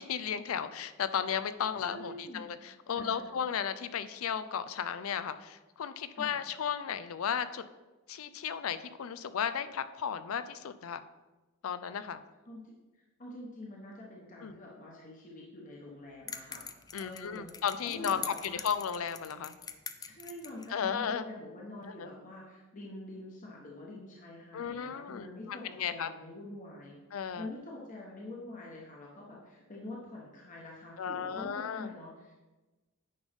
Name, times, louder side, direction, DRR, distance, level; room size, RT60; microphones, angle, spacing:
voice 1, 0.0-7.6 8.1-11.0 11.6-12.2 14.4-14.5 16.9-19.5 20.7-21.3 22.0-22.1 24.5-26.1 27.1-27.5 31.0-31.9, left 7 dB, 80° left, 13 dB, 0.4 m, -34 dB
voice 2, 1.8-2.5 3.0-3.3 6.1-6.4 12.5-12.7 13.2-16.6 17.0-17.5 17.8-18.6 20.0-32.3, left 1 dB, 40° left, -4 dB, 1.2 m, -46 dB
sound 1, 16.3-20.7, left 7 dB, 20° left, 0.3 m, -43 dB
9.4 x 5.3 x 3.6 m, 1.2 s
head